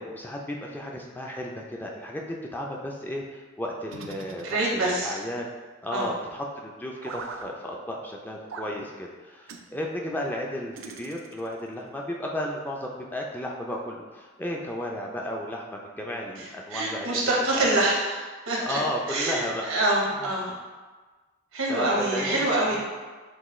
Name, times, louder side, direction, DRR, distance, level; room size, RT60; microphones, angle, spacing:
voice 1, 0.0-5.4 5.8-17.2 17.6-17.9 18.6-19.7 21.7-22.4 22.7-22.8, left 1 dB, 10° left, -1 dB, 0.4 m, -34 dB
sound 1, 3.9-5.1 7.0-7.5 8.5-8.8 9.5-9.7 10.8-11.6, right 4 dB, 65° right, 0.4 m, -41 dB
voice 2, 4.4-5.2 5.9-6.1 16.4-18.8 19.1-20.5 21.5-22.8, right 2 dB, 85° right, -3 dB, 1.1 m, -26 dB
5.9 x 2.2 x 3.1 m, 1.3 s
head